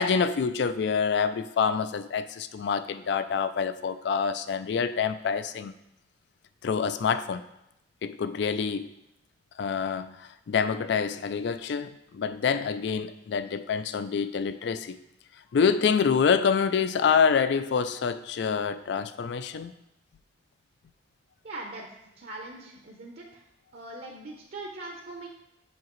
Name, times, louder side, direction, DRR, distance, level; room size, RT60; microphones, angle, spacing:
voice 1, 0.0-5.7 6.6-7.4 8.0-8.9 9.6-15.0 15.5-19.7, left 6 dB, 65° left, 12 dB, 0.4 m, -26 dB
voice 2, 21.4-21.9 22.2-23.4 23.7-25.3, right 2 dB, 60° right, 0 dB, 0.8 m, -41 dB
7.2 x 5.7 x 3.1 m, 0.84 s
head